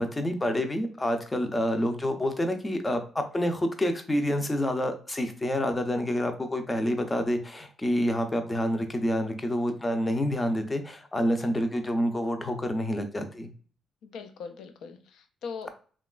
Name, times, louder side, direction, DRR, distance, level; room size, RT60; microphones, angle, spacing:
voice 1, 0.0-13.5, left 1 dB, 20° left, 7 dB, 0.5 m, -28 dB
voice 2, 14.0-15.7, left 5 dB, 80° left, 8 dB, 0.3 m, -40 dB
2.9 x 2.2 x 2.3 m, 0.42 s
cardioid pair, 90°, 0 cm